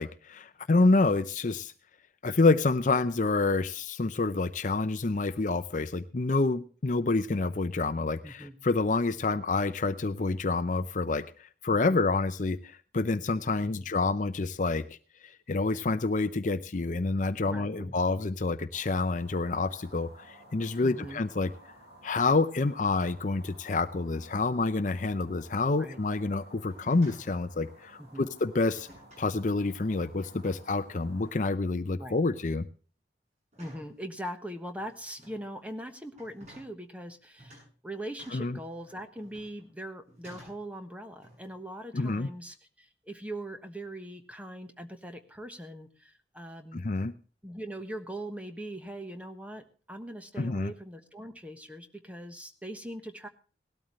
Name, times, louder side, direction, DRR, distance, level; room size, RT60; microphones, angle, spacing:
voice 1, 0.0-1.7 2.2-15.0 15.2-21.5 22.0-28.9 29.2-32.7 38.3-38.6 41.9-42.3 46.7-47.1 50.4-50.7, left 3 dB, 45° left, 12 dB, 0.6 m, -28 dB
voice 2, 8.2-8.5 11.9-12.0 17.5-18.0 20.8-21.2 25.7-26.0 28.0-28.3 32.0-32.2 33.6-46.9 47.4-53.3, right 1 dB, 10° right, 6 dB, 1.3 m, -41 dB
sound 1, 18.7-31.3, right 1 dB, 65° right, 6.9 m, -54 dB
sound 2, 26.7-27.4 28.7-29.3 30.0-30.8 31.2-31.5 32.0-32.4 33.5-34.0 34.7-35.4 36.1-36.7 37.4-37.7 38.2-39.7 40.1-40.7 41.2-41.6, equal, 40° right, 8.0 m, -54 dB
18.0 x 13.0 x 3.1 m, 0.38 s
head